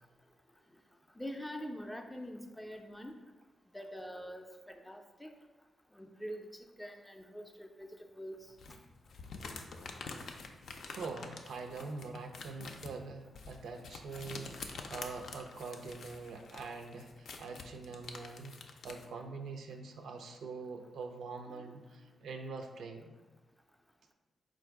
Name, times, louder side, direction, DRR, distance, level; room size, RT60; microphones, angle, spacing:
voice 1, 1.2-3.1 3.7-5.3 6.0-6.5 6.8-8.4 21.5-21.7, equal, 5° left, 4 dB, 0.4 m, -44 dB
sound 1, 8.6-19.1, left 4 dB, 70° left, 0.4 m, -47 dB
voice 2, 10.9-18.6 18.8-23.2, right 4 dB, 85° right, 4 dB, 0.5 m, -44 dB
4.3 x 2.5 x 4.5 m, 1.2 s
wide cardioid pair, 120°, 0 cm